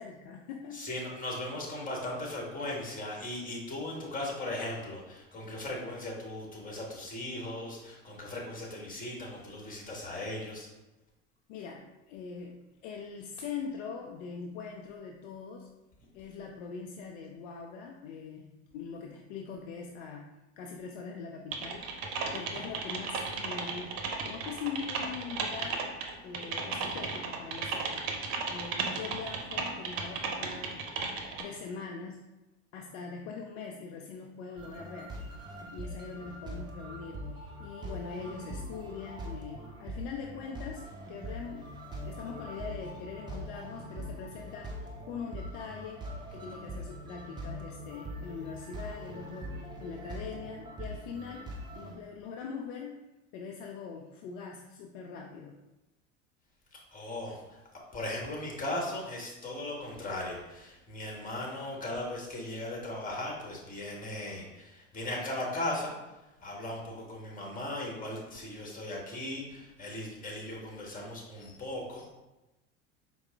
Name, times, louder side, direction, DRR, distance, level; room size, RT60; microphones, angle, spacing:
voice 1, 0.0-0.8 11.5-15.7 16.1-30.9 31.4-32.2 32.7-35.1 35.7-40.8 41.1-41.7 42.0-53.0 53.3-55.6, left 5 dB, 55° left, 1 dB, 0.5 m, -42 dB
voice 2, 0.7-10.7 56.7-57.6 57.9-65.9 66.4-72.1, left 1 dB, 20° left, -1 dB, 1.2 m, -38 dB
Typing, 21.5-31.4, right 4 dB, 55° right, 0.7 m, -35 dB
sound 1, 34.6-51.9, equal, 10° right, 0.6 m, -42 dB
4.7 x 2.1 x 3.3 m, 1.0 s
hypercardioid pair, 80°, 37 cm